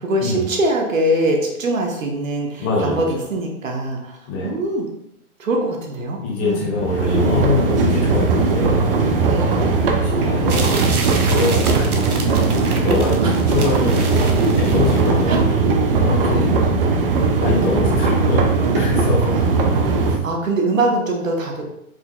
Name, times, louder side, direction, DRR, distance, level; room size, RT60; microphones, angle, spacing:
voice 1, 0.0-4.9 5.4-6.7 9.3-9.5 13.2-13.4 15.3-15.4 16.3-16.5 19.3-19.6 20.2-21.7, right 1 dB, 65° right, 1 dB, 1.0 m, -23 dB
voice 2, 2.6-3.0 4.3-4.5 6.2-8.8 9.5-10.9 11.2-11.9 12.7-14.3 14.6-15.5 16.0-16.6 17.4-18.5 18.7-19.3, left 3 dB, 25° left, -3 dB, 1.1 m, -24 dB
sound 1, 6.8-20.2, right 3 dB, 40° right, 0.6 m, -18 dB
sound 2, 10.5-15.4, right 4 dB, 85° right, 0.7 m, -30 dB
4.7 x 3.8 x 2.2 m, 0.81 s
figure-of-eight pair, 105°, 43 cm